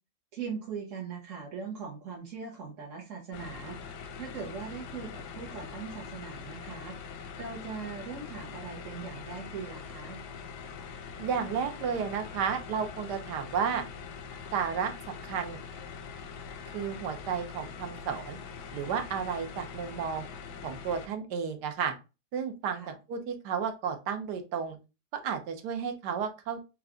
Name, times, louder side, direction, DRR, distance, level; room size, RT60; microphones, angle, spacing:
voice 1, 0.3-3.8 4.1-10.2 22.7-22.9, right 6 dB, 55° right, -3 dB, 1.1 m, -40 dB
sound 1, 3.3-21.1, left 6 dB, 85° left, 1.2 m, -43 dB
voice 2, 11.2-13.8 14.5-15.6 16.7-18.4 18.7-20.3 20.6-21.9 22.3-22.8 23.1-24.8 25.2-26.6, right 7 dB, 80° right, 6 dB, 1.3 m, -32 dB
4.5 x 2.4 x 3.7 m, 0.28 s
omnidirectional pair, 1.8 m